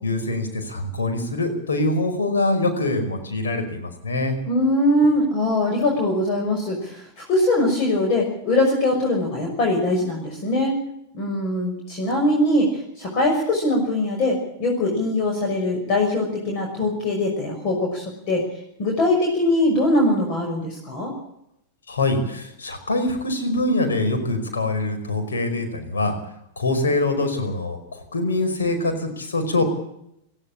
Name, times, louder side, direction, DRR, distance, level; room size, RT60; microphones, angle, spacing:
voice 1, 0.0-4.4 21.9-26.2 26.6-29.6, left 2 dB, 85° left, 6 dB, 5.2 m, -24 dB
voice 2, 4.5-10.8 11.1-18.4 18.8-21.1, left 1 dB, 45° left, 1 dB, 6.0 m, -22 dB
18.0 x 16.0 x 8.8 m, 0.78 s
hypercardioid pair, 105°, 0 cm